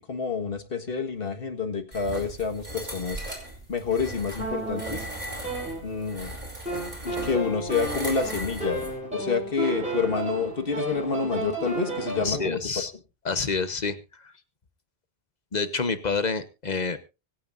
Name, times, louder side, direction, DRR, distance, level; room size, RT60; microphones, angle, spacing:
voice 1, 0.0-3.2 3.7-5.1 5.8-6.3 7.0-13.0, left 5 dB, 60° left, 7 dB, 1.8 m, -28 dB
sound 1, 1.9-8.9, right 1 dB, 40° right, 5.1 m, -37 dB
sound 2, 4.4-6.2 6.7-12.4, right 2 dB, 5° right, 7.7 m, -33 dB
voice 2, 12.2-12.9 13.2-14.3 15.5-17.0, left 4 dB, 40° left, 11 dB, 1.2 m, -28 dB
24.5 x 9.1 x 2.6 m, 0.28 s
omnidirectional pair, 1.1 m